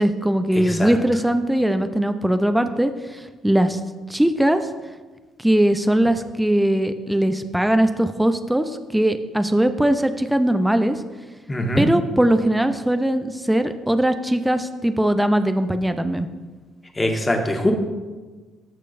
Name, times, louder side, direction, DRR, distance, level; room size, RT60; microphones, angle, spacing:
voice 1, 0.0-3.8 4.1-4.6 5.4-11.0 11.8-16.3, right 1 dB, 5° right, 9 dB, 0.6 m, -20 dB
voice 2, 11.5-11.9 17.0-17.7, left 1 dB, 20° left, 2 dB, 1.7 m, -22 dB
14.0 x 6.5 x 2.6 m, 1.3 s
hypercardioid pair, 50°, 0 cm